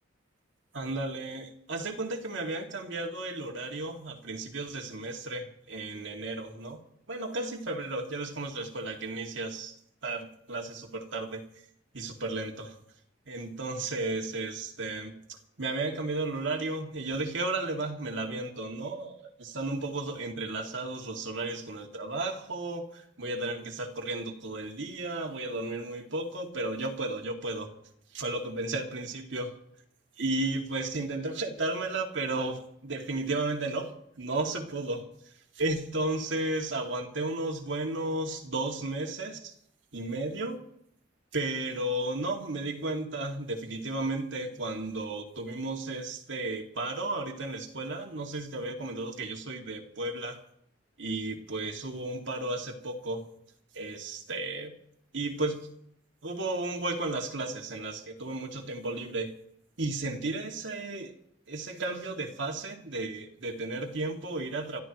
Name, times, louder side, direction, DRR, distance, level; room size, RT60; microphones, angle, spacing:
voice 1, 0.7-6.8 7.1-9.7 10.0-11.5 11.9-12.8 13.3-27.7 28.1-29.5 30.2-39.5 39.9-40.6 41.3-50.4 51.0-53.2 53.7-54.7 55.1-55.7 56.2-59.3 59.8-61.1 61.5-64.8, right 2 dB, 70° right, 2 dB, 2.2 m, -34 dB
28.0 x 13.5 x 3.0 m, 0.70 s
head